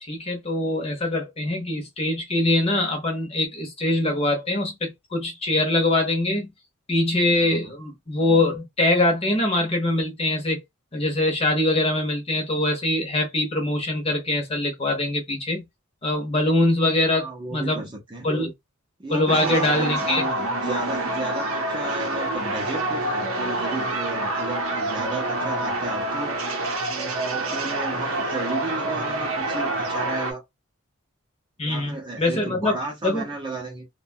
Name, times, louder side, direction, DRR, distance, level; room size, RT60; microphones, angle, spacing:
voice 1, 0.0-6.5 6.9-10.6 10.9-15.6 16.0-17.8 18.2-18.5 19.1-20.2 31.6-32.7 33.0-33.2, left 2 dB, 25° left, 0.8 m, -23 dB
voice 2, 7.4-7.7 17.1-18.3 19.0-26.4 26.8-30.4 31.6-33.9, right 3 dB, 20° right, 0.6 m, -33 dB
sound 1, 19.3-30.3, right 2 dB, 75° right, 0.6 m, -27 dB
2.7 x 2.2 x 2.6 m
head